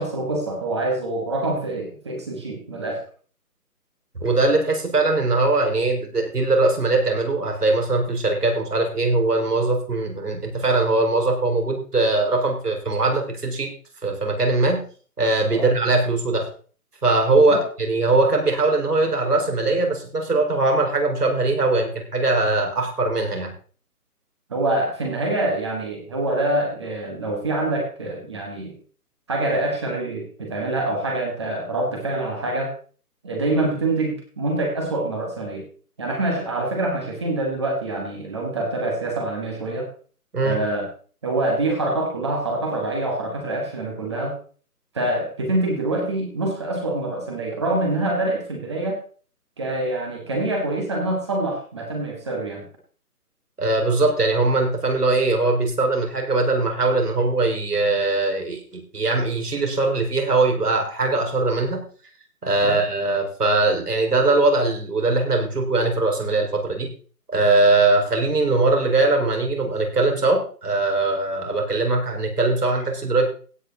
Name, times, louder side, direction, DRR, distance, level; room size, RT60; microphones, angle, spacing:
voice 1, 0.0-3.0 15.5-15.7 17.5-17.6 24.5-28.8 29.3-32.7 33.2-35.7 36.0-39.9 40.4-40.9 41.2-44.4 44.9-49.0 49.6-52.7 62.6-62.8, right 2 dB, 20° right, 1 dB, 2.1 m, -25 dB
voice 2, 4.2-13.7 14.0-14.8 15.2-16.5 17.0-23.5 40.3-40.6 53.6-61.8 62.4-66.9 67.3-73.2, right 2 dB, 85° right, 3 dB, 5.3 m, -21 dB
16.5 x 8.9 x 4.1 m, 0.42 s
hypercardioid pair, 175°, 46 cm